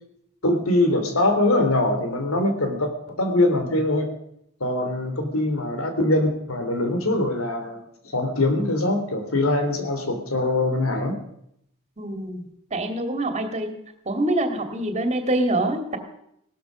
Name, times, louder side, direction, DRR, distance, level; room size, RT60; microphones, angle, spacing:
voice 1, 0.4-4.1 4.6-7.8 8.1-11.2, left 2 dB, 90° left, 7 dB, 3.1 m, -23 dB
voice 2, 12.0-12.4 12.7-13.7 14.1-16.0, right 1 dB, 30° right, 6 dB, 2.4 m, -25 dB
17.0 x 12.5 x 6.3 m, 0.75 s
head